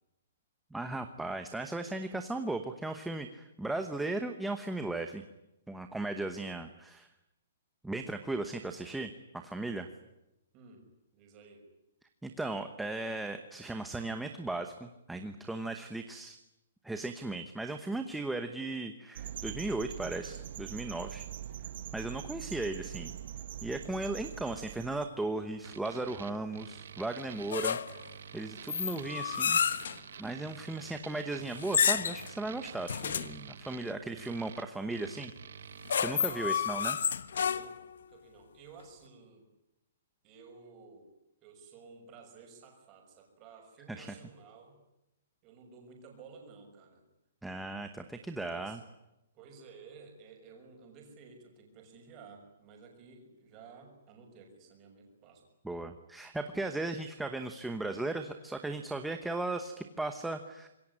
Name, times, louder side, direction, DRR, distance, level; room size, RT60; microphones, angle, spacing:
voice 1, 0.7-5.2 5.7-7.1 7.8-9.9 12.2-16.4 16.8-21.3 21.9-23.1 23.6-27.8 28.3-29.6 30.2-35.3 36.0-37.0 43.9-44.1 47.4-48.8 55.6-60.7, right 2 dB, ahead, 6 dB, 1.0 m, -36 dB
voice 2, 11.1-11.7 36.2-36.7 37.5-39.5 40.2-41.1 41.4-44.8 45.4-47.0 48.3-48.8 49.3-55.4, right 5 dB, 20° right, 2 dB, 6.2 m, -54 dB
sound 1, 19.2-25.1, right 10 dB, 45° right, 1.5 m, -43 dB
sound 2, 25.6-36.0, right 7 dB, 60° right, 1.6 m, -48 dB
sound 3, 27.5-28.1 28.7-30.0 31.6-32.3 32.9-33.4 35.6-37.9, left 7 dB, 65° left, 1.4 m, -30 dB
26.5 x 22.5 x 9.9 m, 0.92 s
hypercardioid pair, 180°, 0 cm